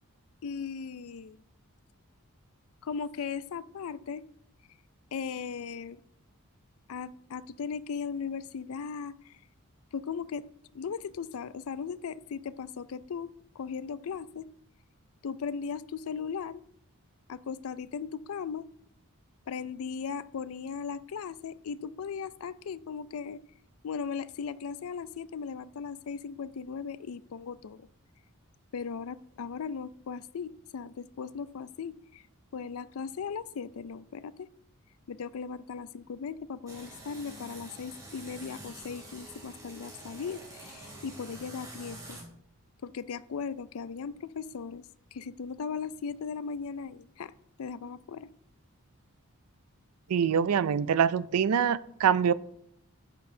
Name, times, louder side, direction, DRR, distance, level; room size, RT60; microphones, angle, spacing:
voice 1, 0.4-1.4 2.8-4.2 5.1-6.0 6.9-9.3 9.9-10.5 10.7-14.5 15.2-16.6 17.3-18.7 19.5-23.4 23.8-27.9 28.7-32.2 32.5-34.5 35.1-42.2 42.8-47.3 47.6-48.3, left 6 dB, 70° left, 17 dB, 0.4 m, -37 dB
sound 1, 36.7-42.2, right 1 dB, 15° right, 2.8 m, -47 dB
voice 2, 50.1-52.3, right 7 dB, 85° right, 17 dB, 0.4 m, -24 dB
11.5 x 8.7 x 2.7 m, 0.70 s
head